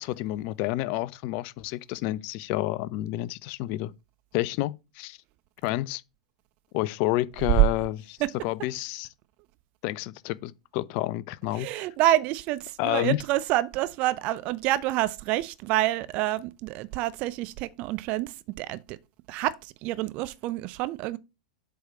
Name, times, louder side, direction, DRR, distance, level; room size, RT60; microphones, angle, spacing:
voice 1, 0.0-3.9 4.3-5.2 5.6-6.0 6.7-8.2 8.4-9.1 9.8-11.7 12.8-13.2, left 16 dB, 40° left, 0.7 m, -29 dB
voice 2, 11.5-19.0 19.3-21.2, right 16 dB, 40° right, 0.6 m, -27 dB
8.0 x 4.8 x 7.0 m
figure-of-eight pair, 100°, 4 cm